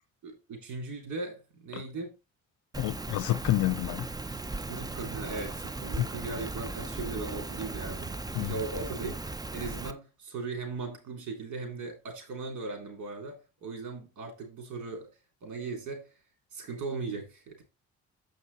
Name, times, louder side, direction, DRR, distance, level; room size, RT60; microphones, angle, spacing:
voice 1, 0.2-2.1 4.7-15.1 15.4-16.1 16.5-17.6, right 4 dB, 75° right, 3.4 m, -38 dB
Rain, 2.7-9.9, right 2 dB, 15° right, 0.6 m, -37 dB
voice 2, 2.8-4.1 6.0-6.1 8.3-8.5, left 16 dB, 85° left, 0.5 m, -28 dB
7.6 x 5.2 x 4.1 m
cardioid pair, 90°, 30 cm